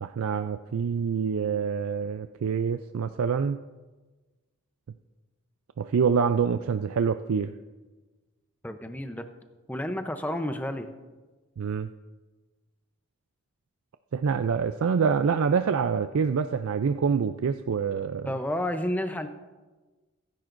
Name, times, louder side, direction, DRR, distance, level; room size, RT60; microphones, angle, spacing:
voice 1, 0.0-3.6 5.8-7.5 11.6-11.9 14.1-18.3, right 6 dB, 70° right, 9 dB, 0.4 m, -26 dB
voice 2, 8.6-9.2 9.7-10.9 18.3-19.3, left 1 dB, 5° left, 7 dB, 0.6 m, -30 dB
23.0 x 10.5 x 2.6 m, 1.3 s
head